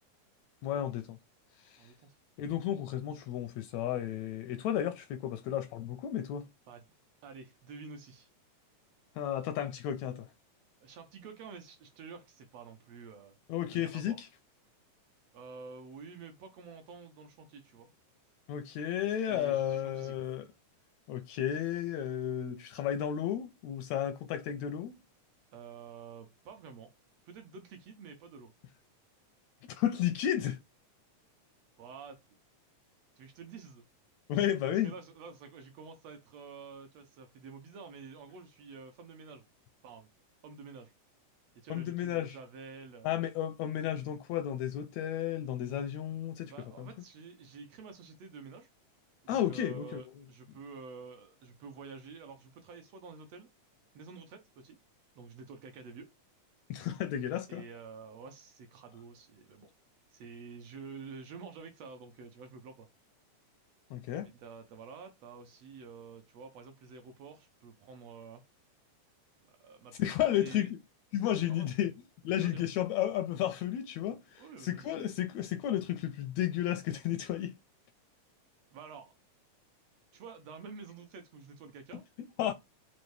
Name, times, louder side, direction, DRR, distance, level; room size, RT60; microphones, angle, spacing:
voice 1, 0.6-1.2 1.6-1.9 2.4-6.5 9.1-10.3 13.5-14.3 18.5-20.5 21.1-25.0 29.7-30.6 34.3-34.9 41.7-42.4 43.0-46.5 46.8-46.9 49.3-50.0 56.7-57.6 63.9-64.3 70.0-70.8 71.1-71.9 72.2-77.5 82.4-82.5, left 11 dB, 80° left, 1.6 m, -33 dB
voice 2, 1.8-2.2 6.7-6.8 7.2-8.3 10.8-13.4 13.7-14.2 15.3-17.9 19.3-20.3 25.5-26.9 27.3-28.5 31.8-32.2 33.2-33.8 34.8-39.4 39.8-40.1 40.4-40.9 41.5-43.2 46.5-48.7 49.2-53.5 53.9-54.8 55.1-56.1 57.5-59.7 60.1-62.9 64.2-68.4 69.5-70.7 71.3-71.7 72.3-72.7 74.1-74.9 78.7-79.1 80.1-82.0, right 5 dB, 70° right, 1.6 m, -49 dB
5.3 x 2.5 x 3.1 m
omnidirectional pair, 3.5 m